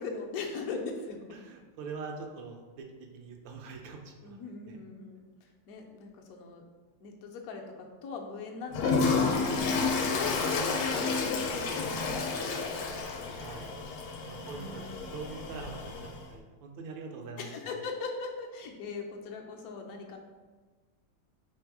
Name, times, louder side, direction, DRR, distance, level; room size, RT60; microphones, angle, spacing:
voice 1, 0.0-1.3 4.2-5.3 5.7-6.6 7.0-13.4 14.4-15.0 17.4-20.2, left 4 dB, 65° left, 2 dB, 1.0 m, -40 dB
voice 2, 1.4-2.9 3.1-4.4 4.7-4.8 10.2-10.6 13.3-13.8 14.2-14.8 15.1-15.8 16.3-17.5, right 4 dB, 85° right, 2 dB, 1.4 m, -43 dB
Toilet flush, 8.7-16.2, left 4 dB, 80° left, 1.3 m, -31 dB
3.5 x 3.2 x 4.6 m, 1.3 s
omnidirectional pair, 2.0 m